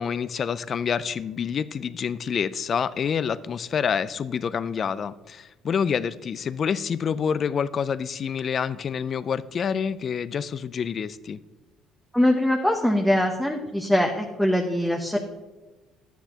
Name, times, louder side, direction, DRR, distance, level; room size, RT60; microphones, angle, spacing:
voice 1, 0.0-11.4, left 7 dB, 45° left, 16 dB, 0.4 m, -27 dB
voice 2, 12.1-15.2, left 1 dB, 5° left, 1 dB, 0.8 m, -22 dB
11.5 x 9.2 x 2.9 m, 1.2 s
cardioid pair, 110°, 0 cm